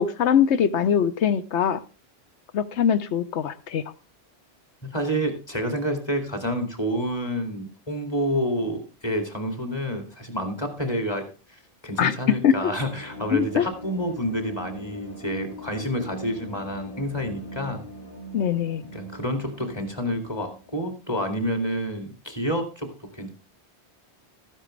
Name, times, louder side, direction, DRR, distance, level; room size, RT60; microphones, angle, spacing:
voice 1, 0.0-1.8 2.5-3.8 12.0-12.1 12.4-12.5 13.3-13.7 18.3-18.8, left 8 dB, 90° left, 12 dB, 1.1 m, -22 dB
voice 2, 4.8-17.8 18.9-23.3, equal, 25° left, 5 dB, 2.4 m, -29 dB
sound 1, 12.7-20.9, equal, 60° left, 4.2 m, -41 dB
13.5 x 10.0 x 3.3 m, 0.32 s
omnidirectional pair, 1.1 m